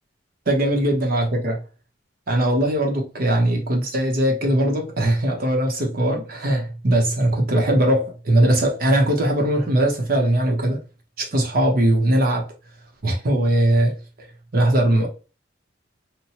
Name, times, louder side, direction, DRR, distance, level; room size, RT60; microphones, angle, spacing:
voice 1, 0.5-1.5 2.3-10.8 11.2-12.5 13.0-14.3 14.5-15.1, right 1 dB, 50° right, 0.8 m, -20 dB
2.9 x 2.2 x 2.9 m
head